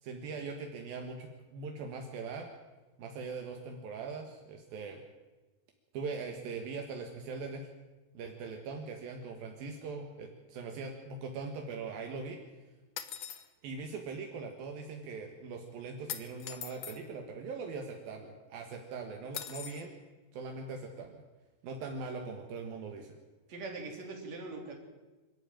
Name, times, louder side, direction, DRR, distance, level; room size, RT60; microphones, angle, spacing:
voice 1, 0.0-2.5 3.0-5.0 5.9-7.7 8.2-12.4 13.6-20.0 20.3-21.2 21.6-23.2, right 4 dB, 75° right, 3 dB, 3.4 m, -41 dB
sound 1, 13.0-13.5 16.1-17.0 19.3-19.8, left 9 dB, 60° left, 1.9 m, -41 dB
voice 2, 23.5-24.7, right 3 dB, 45° right, 1 dB, 4.4 m, -41 dB
26.0 x 12.5 x 9.0 m, 1.2 s
omnidirectional pair, 4.3 m